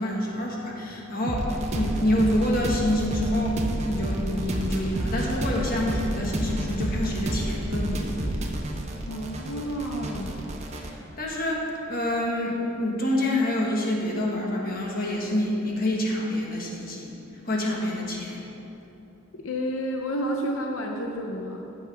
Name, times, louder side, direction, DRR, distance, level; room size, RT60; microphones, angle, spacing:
voice 1, 0.0-8.2 10.8-17.2 17.4-18.5, left 1 dB, 45° left, -2 dB, 1.4 m, -27 dB
sound 1, 1.3-10.9, right 1 dB, 35° right, 0.8 m, -30 dB
voice 2, 9.1-10.4 19.3-21.6, equal, 85° left, 2 dB, 0.7 m, -30 dB
15.0 x 6.4 x 3.4 m, 2.9 s
head